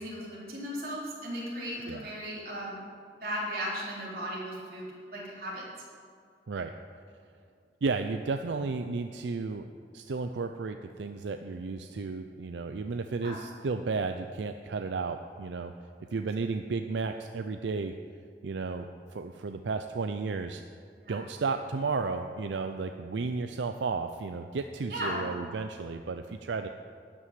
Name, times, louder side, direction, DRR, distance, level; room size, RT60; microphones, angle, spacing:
voice 1, 0.0-2.8 3.2-5.6 13.2-13.4 16.1-16.2 21.0-21.2 24.9-25.3, equal, 55° right, -6 dB, 3.9 m, -36 dB
voice 2, 7.8-9.6 9.9-15.7 16.1-17.9 18.4-20.6 21.1-26.7, right 4 dB, 85° right, 7 dB, 0.5 m, -33 dB
12.5 x 6.1 x 9.5 m, 2.2 s
head